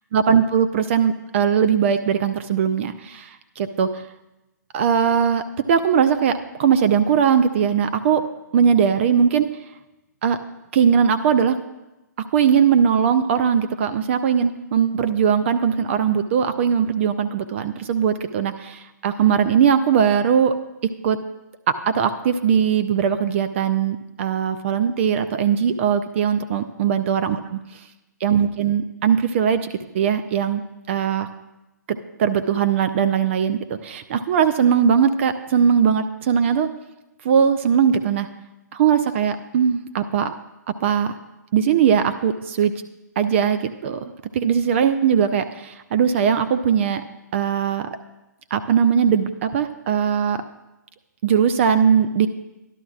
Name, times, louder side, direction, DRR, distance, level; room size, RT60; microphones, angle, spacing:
voice 1, 0.1-3.3 3.6-4.0 4.7-8.2 8.5-9.5 10.2-10.4 10.7-11.6 12.3-20.5 21.0-21.2 21.9-27.4 28.2-30.6 30.9-31.3 31.9-36.7 37.2-38.3 38.7-40.3 40.8-41.2 41.5-42.7 43.2-47.0 47.3-47.9 48.5-50.4 51.2-52.3, right 7 dB, 40° right, 10 dB, 0.5 m, -20 dB
13.5 x 11.5 x 2.4 m, 0.98 s
hypercardioid pair, 135°, 10 cm